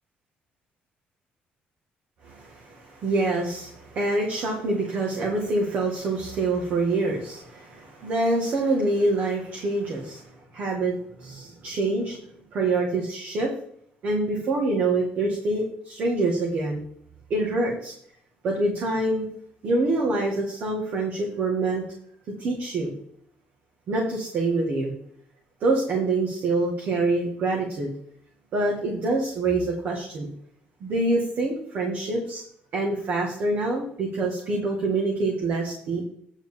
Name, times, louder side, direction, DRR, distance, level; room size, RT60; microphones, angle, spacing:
voice 1, 2.2-12.2 12.5-13.5 14.0-16.8 17.3-17.9 18.4-19.3 19.6-21.8 22.4-22.9 23.9-24.9 25.6-27.9 28.5-30.3 30.8-32.4 32.7-36.0, right 2 dB, 55° right, 0 dB, 2.0 m, -26 dB
9.1 x 4.6 x 7.3 m, 0.67 s
cardioid pair, 145°, 4 cm